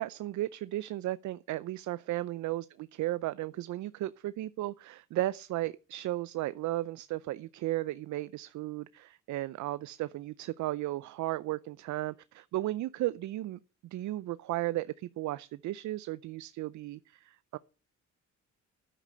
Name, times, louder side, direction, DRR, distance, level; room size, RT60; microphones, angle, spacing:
voice 1, 0.0-13.6 13.9-17.6, right 16 dB, 70° right, 0.5 m, -35 dB
9.9 x 7.4 x 9.4 m
cardioid pair, 90°, 30 cm